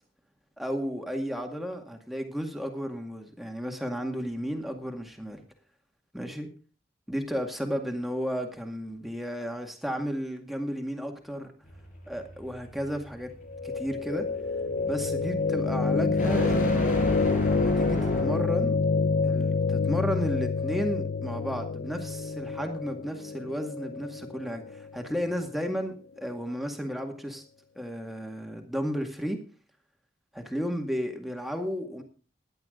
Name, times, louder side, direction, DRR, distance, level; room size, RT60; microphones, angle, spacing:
voice 1, 0.6-5.4 6.1-6.5 7.1-11.5 12.1-13.3 13.6-14.3 14.8-18.8 19.2-27.4 27.8-29.4 30.3-32.0, equal, ahead, 3 dB, 2.0 m, -33 dB
sound 1, 11.6-18.6, equal, 45° left, 5.6 m, -33 dB
sound 2, 13.5-25.6, left 4 dB, 60° left, 0.5 m, -28 dB
16.5 x 11.0 x 3.9 m, 0.37 s
head